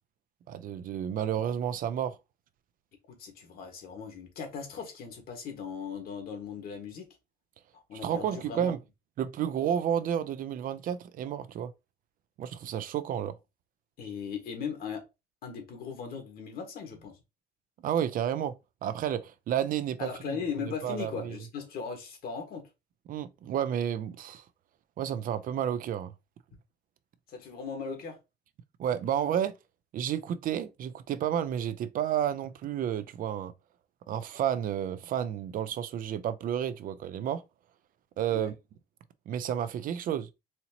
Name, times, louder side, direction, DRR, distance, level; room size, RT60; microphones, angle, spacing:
voice 1, 0.5-2.2 8.0-8.8 9.2-11.7 12.4-13.3 17.8-18.5 18.8-20.4 20.8-21.4 23.1-24.4 25.0-26.1 28.8-29.5 29.9-33.5 34.1-37.4 38.2-38.5 39.3-40.3, right 9 dB, 55° right, 0.5 m, -31 dB
voice 2, 3.1-7.1 7.7-8.7 14.0-15.0 15.4-17.2 20.0-22.6 27.3-28.2 38.3-38.5, left 6 dB, 65° left, 1.6 m, -38 dB
4.2 x 2.8 x 2.8 m
cardioid pair, 110°, 17 cm